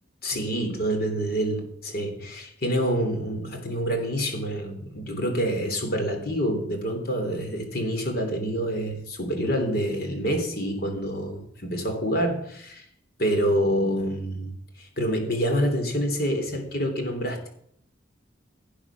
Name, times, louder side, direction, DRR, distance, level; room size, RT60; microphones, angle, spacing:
voice 1, 0.2-12.9 13.2-17.5, equal, 50° left, 4 dB, 3.4 m, -27 dB
17.0 x 8.9 x 6.1 m, 0.70 s
head